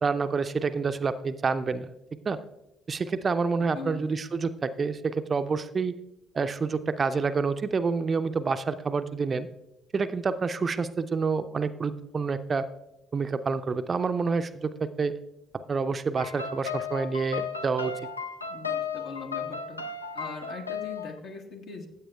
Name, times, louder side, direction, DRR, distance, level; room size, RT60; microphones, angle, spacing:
voice 1, 0.0-1.9 2.3-2.4 2.9-5.9 6.3-9.5 9.9-12.7 13.1-15.1 15.7-17.9, right 4 dB, 35° right, 11 dB, 0.4 m, -28 dB
voice 2, 3.6-4.0 18.5-19.8 20.1-21.9, left 4 dB, 60° left, 3 dB, 1.1 m, -40 dB
sound 1, 16.2-21.2, left 6 dB, 85° left, 0.4 m, -35 dB
15.0 x 7.9 x 2.3 m, 0.85 s
figure-of-eight pair, 45°, 0 cm